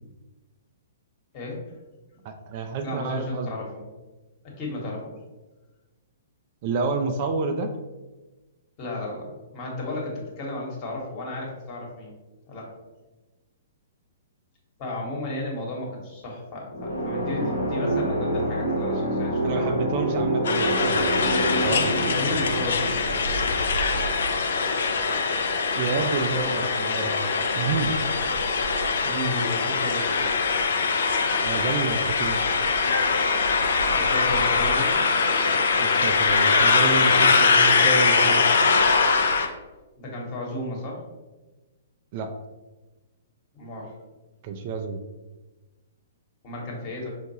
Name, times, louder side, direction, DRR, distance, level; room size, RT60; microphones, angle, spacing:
voice 1, 1.3-1.8 2.8-3.8 4.4-5.1 8.8-12.1 12.5-12.7 14.8-20.3 22.2-23.3 29.0-30.3 33.9-35.1 40.0-41.0 43.5-43.9 46.4-47.1, left 1 dB, 35° left, -2 dB, 1.2 m, -34 dB
voice 2, 2.2-3.5 6.6-7.7 19.4-21.2 21.6-22.0 25.8-28.0 31.4-32.4 35.8-38.4 42.1-42.3 44.4-45.0, right 4 dB, 40° right, 6 dB, 0.3 m, -29 dB
sound 1, 16.7-24.4, right 1 dB, 85° left, 1.0 m, -27 dB
sound 2, 20.4-39.5, left 4 dB, 65° left, 0.4 m, -22 dB
5.2 x 2.4 x 2.8 m, 1.2 s
figure-of-eight pair, 115°, 0 cm